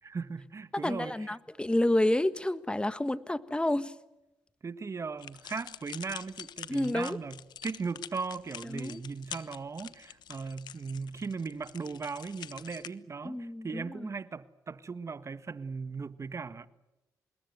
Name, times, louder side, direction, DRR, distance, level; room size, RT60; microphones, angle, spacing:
voice 1, 0.0-1.4 4.6-16.7, right 4 dB, 40° right, 1.5 m, -38 dB
voice 2, 0.8-3.9 6.7-7.2 8.7-9.0 13.2-14.1, left 1 dB, 15° left, 1.5 m, -29 dB
sound 1, 5.2-12.9, left 10 dB, 75° left, 1.1 m, -46 dB
26.0 x 21.0 x 8.0 m
supercardioid pair, 60°, 7 cm